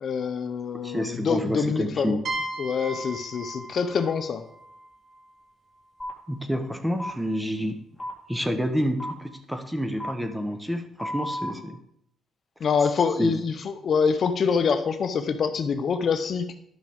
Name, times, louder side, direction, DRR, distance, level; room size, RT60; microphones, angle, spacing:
voice 1, 0.0-2.2 2.6-4.4 12.6-16.5, left 6 dB, 55° left, 9 dB, 0.7 m, -25 dB
voice 2, 0.8-2.2 6.3-7.8 8.3-11.8 13.2-13.3, equal, 5° right, 7 dB, 1.1 m, -28 dB
sound 1, 2.3-5.9, right 2 dB, 50° right, 1.1 m, -37 dB
sound 2, 6.0-6.1 7.0-7.1 8.0-8.1 9.0-9.1 10.0-10.1 11.0-11.5, left 1 dB, 15° left, 2.6 m, -32 dB
11.5 x 5.9 x 3.6 m, 0.72 s
cardioid pair, 90°, 0 cm